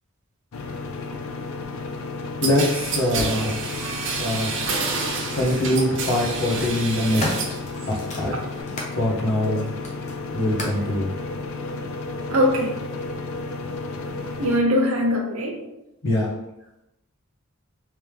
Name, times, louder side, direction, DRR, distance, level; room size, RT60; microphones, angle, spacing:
sound 1, 0.5-14.6, left 3 dB, 75° left, 0.4 m, -33 dB
voice 1, 2.4-3.6 4.2-4.5 5.3-7.6 8.2-8.3 8.9-9.7 10.3-11.1 16.0-16.3, left 1 dB, 55° left, -2 dB, 0.9 m, -23 dB
sound 2, 2.4-7.6 8.0-8.6, right 4 dB, 55° right, 0.5 m, -29 dB
sound 3, 7.1-9.0 9.4-10.9 11.8-11.9, left 1 dB, 30° left, 0.6 m, -34 dB
voice 2, 12.3-12.7 14.4-15.6, left 1 dB, 75° right, 0 dB, 0.9 m, -21 dB
3.3 x 3.0 x 3.4 m, 0.91 s
head